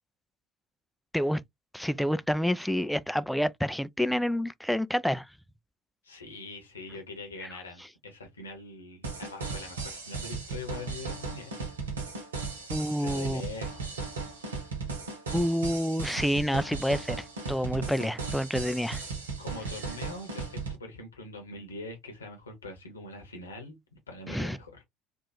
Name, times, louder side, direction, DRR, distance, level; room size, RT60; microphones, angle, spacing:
voice 1, 1.7-5.3 7.4-7.5 12.7-13.4 15.3-19.0 24.3-24.6, equal, ahead, 0.3 m, -28 dB
voice 2, 6.0-11.6 12.9-14.0 19.4-24.8, left 2 dB, 80° left, 1.0 m, -43 dB
sound 1, 9.0-20.8, right 4 dB, 80° right, 0.9 m, -36 dB
3.6 x 2.4 x 2.8 m
figure-of-eight pair, 60°, 0 cm